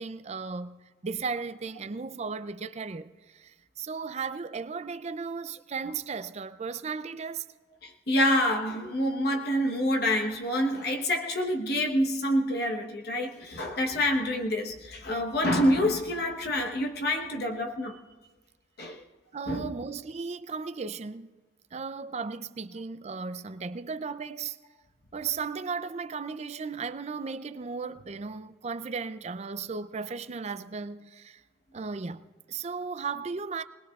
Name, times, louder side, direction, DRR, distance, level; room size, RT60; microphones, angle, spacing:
voice 1, 0.0-7.5 19.3-21.3 21.7-24.6 25.1-31.4 31.7-33.6, right 5 dB, 35° right, 0.4 m, -36 dB
voice 2, 7.8-18.0 18.8-19.0 19.5-19.7, left 1 dB, 60° left, 1.1 m, -27 dB
27.5 x 20.5 x 2.4 m
head